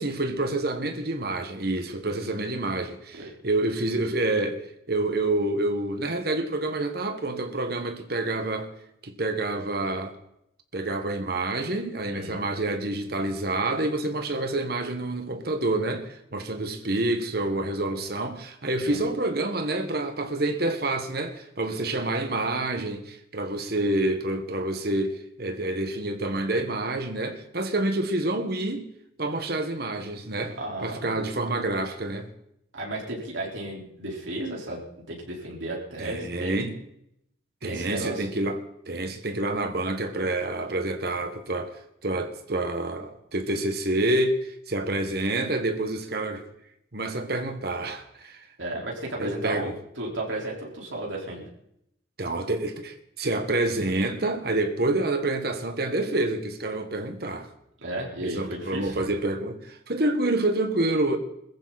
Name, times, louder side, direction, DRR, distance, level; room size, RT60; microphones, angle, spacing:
voice 1, 0.0-4.6 4.9-8.7 9.0-10.1 10.7-28.9 29.2-32.3 36.0-36.8 37.6-38.6 38.9-46.5 46.9-48.4 49.2-49.7 52.2-57.5 58.2-61.2, right 2 dB, 50° right, 1.7 m, -28 dB
voice 2, 12.0-12.4 18.8-19.0 30.6-31.2 32.7-34.8 35.1-36.6 37.6-38.3 48.6-51.5 57.8-59.0, right 1 dB, 80° right, 4.6 m, -34 dB
21.5 x 14.5 x 4.3 m
head